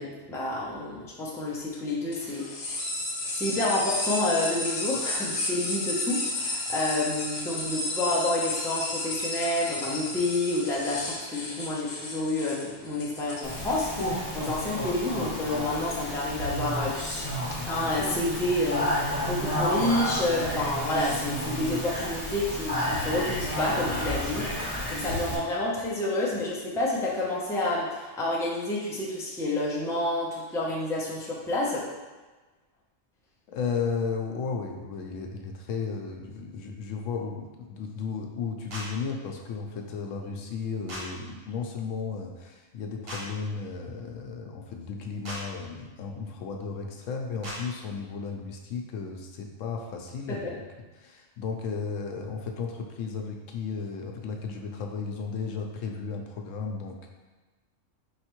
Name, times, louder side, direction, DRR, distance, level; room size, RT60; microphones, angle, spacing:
voice 1, 0.0-3.1 3.4-17.0 17.7-31.8 50.3-50.5, left 2 dB, 5° left, -5 dB, 0.4 m, -29 dB
sound 1, 2.1-14.1, left 2 dB, 60° left, 1.0 m, -33 dB
Speech, 13.4-25.4, equal, 30° left, 1.0 m, -31 dB
voice 2, 33.5-50.6 51.0-57.1, left 5 dB, 85° left, 2 dB, 1.0 m, -34 dB
sound 2, 38.7-38.9 40.9-41.0 43.1-43.2 45.2-45.4 47.4-47.6, equal, 50° right, 1.3 m, -36 dB
5.1 x 3.2 x 3.0 m, 1.2 s
omnidirectional pair, 1.3 m